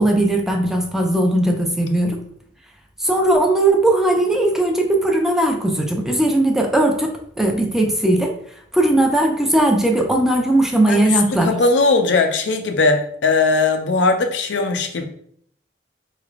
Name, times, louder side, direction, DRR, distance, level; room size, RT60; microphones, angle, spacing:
voice 1, 0.0-2.2 3.0-8.3 8.7-11.5, right 1 dB, 5° right, 2 dB, 0.4 m, -18 dB
voice 2, 10.9-15.0, left 3 dB, 85° left, 6 dB, 0.5 m, -19 dB
4.0 x 3.2 x 2.4 m, 0.64 s
head